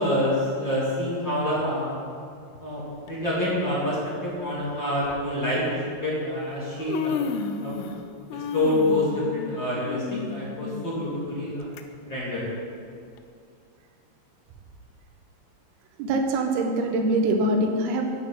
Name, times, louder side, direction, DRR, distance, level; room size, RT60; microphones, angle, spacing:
voice 1, 0.0-2.0 2.6-5.6 6.0-7.2 7.6-7.7 8.3-11.7 12.1-12.5, left 1 dB, 30° left, -7 dB, 2.6 m, -27 dB
Human voice, 3.1-3.3 4.3-4.4 5.0-5.2 6.2-6.3 6.6-8.0 8.3-11.8 12.2-12.3 13.2-13.3, left 6 dB, 90° left, 3.4 m, -32 dB
voice 2, 16.0-18.0, right 1 dB, 90° right, 3 dB, 4.2 m, -23 dB
11.5 x 10.0 x 8.2 m, 2.4 s
omnidirectional pair, 5.8 m